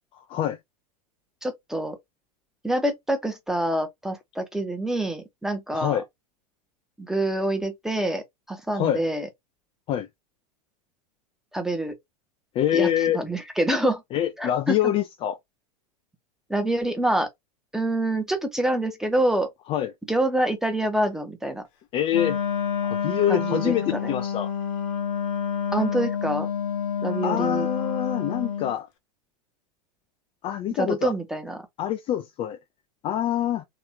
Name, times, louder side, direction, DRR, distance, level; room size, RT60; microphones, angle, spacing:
voice 1, 1.4-2.0 2.6-6.0 7.0-9.3 11.5-12.0 12.7-12.9 13.1-14.0 14.4-14.8 16.5-17.3 17.7-19.5 20.1-21.6 23.3-24.1 25.7-26.5 27.0-27.7 30.7-31.6, right 1 dB, ahead, 0.9 m, -26 dB
voice 2, 5.7-6.0 8.7-9.0 9.9-10.1 12.5-13.2 14.1-15.4 19.7-19.9 21.9-22.4 22.8-24.5 27.2-28.9 30.4-31.1 31.8-32.6 33.0-33.6, left 11 dB, 25° left, 0.4 m, -25 dB
Wind instrument woodwind instrument, 22.1-28.7, left 7 dB, 55° left, 1.0 m, -28 dB
3.3 x 3.0 x 2.9 m
figure-of-eight pair, 90°, 20 cm